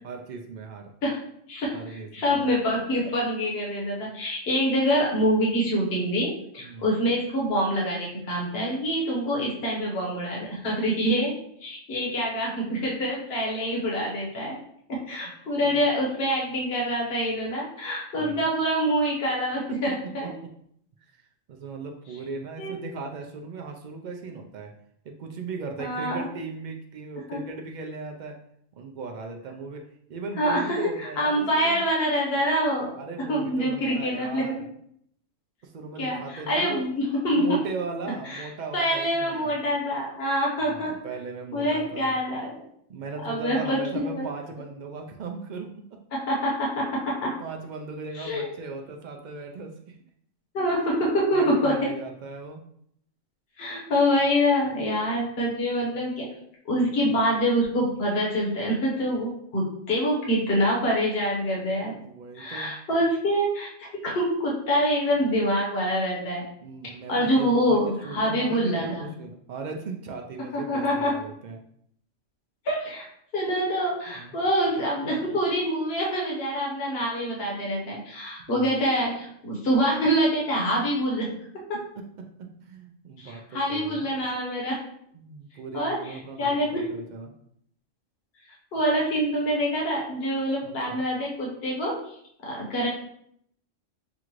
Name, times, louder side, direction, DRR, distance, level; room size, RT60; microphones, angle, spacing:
voice 1, 0.0-0.9 1.7-2.5 6.6-6.9 15.6-15.8 18.1-18.5 19.7-20.0 20.2-20.3 21.0-21.2 21.5-24.7 25.0-28.4 28.8-29.8 30.1-31.8 33.0-34.7 35.6-36.8 37.3-39.6 40.6-42.2 42.9-45.8 47.2-50.0 50.8-50.9 51.3-52.6 54.7-54.8 61.9-62.7 66.6-71.6 74.1-74.4 78.5-78.8 82.0-84.1 85.1-87.3 90.6-91.0, right 4 dB, 80° right, 2 dB, 0.4 m, -38 dB
voice 2, 2.1-11.3 11.6-14.6 14.9-20.3 22.6-22.8 25.8-26.3 27.3-27.4 30.4-32.9 33.3-34.6 36.0-37.6 38.3-38.4 38.7-41.0 41.5-42.5 43.2-44.3 46.1-47.3 48.2-48.4 50.5-51.9 53.6-56.3 56.7-61.9 62.3-66.4 67.1-69.1 70.5-71.1 72.6-73.0 73.3-81.3 83.2-84.8 85.7-86.9 88.7-92.0 92.5-92.9, equal, 50° left, -3 dB, 1.3 m, -25 dB
6.0 x 2.4 x 3.0 m, 0.70 s
omnidirectional pair, 1.3 m